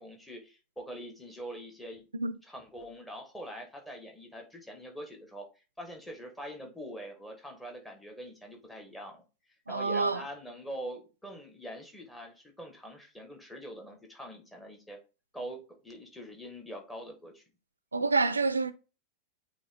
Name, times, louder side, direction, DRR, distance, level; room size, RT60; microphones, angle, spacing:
voice 1, 0.0-2.0 2.4-5.5 5.8-9.2 9.7-15.0 15.3-17.4, equal, 5° left, 1.9 m, -44 dB
voice 2, 9.7-10.2 17.9-18.7, right 3 dB, 80° right, 0.5 m, -27 dB
8.3 x 3.1 x 4.0 m
figure-of-eight pair, 90°, 0 cm